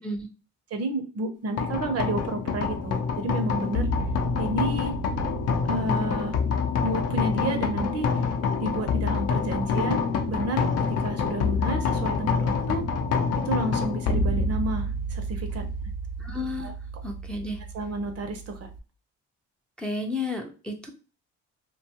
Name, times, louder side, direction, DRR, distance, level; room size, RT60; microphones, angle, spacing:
voice 1, 0.7-3.9 4.4-5.0 5.7-6.4 6.8-8.3 8.6-12.8 13.3-15.7 16.6-16.7 17.7-18.7, right 2 dB, 55° right, 6 dB, 0.7 m, -31 dB
sound 1, 1.6-18.8, left 4 dB, 55° left, 0.5 m, -27 dB
voice 2, 16.2-16.7 17.0-17.6 19.8-20.9, left 2 dB, 5° left, 3 dB, 0.4 m, -32 dB
2.5 x 2.3 x 2.8 m, 0.34 s
cardioid pair, 90°, 30 cm